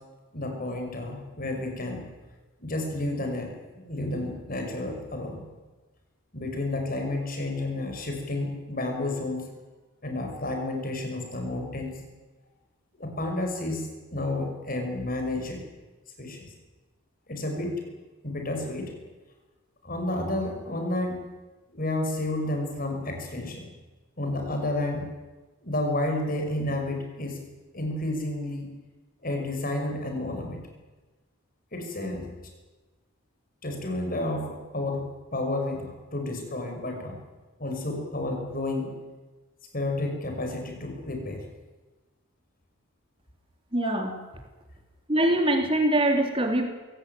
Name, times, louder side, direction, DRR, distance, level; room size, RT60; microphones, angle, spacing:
voice 1, 0.3-2.1 2.6-5.5 6.3-9.5 10.0-12.0 12.9-15.6 16.2-16.5 17.3-17.8 18.2-19.0 19.8-21.2 21.7-23.7 24.2-25.1 25.6-27.4 27.7-28.7 29.2-30.6 31.7-32.3 33.6-35.1 35.3-37.2 37.6-38.9 39.7-41.4 43.7-44.1, left 1 dB, 40° left, 3 dB, 5.5 m, -31 dB
voice 2, 43.7-44.1 45.1-46.7, right 1 dB, 25° right, 4 dB, 3.4 m, -23 dB
22.5 x 17.5 x 9.2 m, 1.2 s
head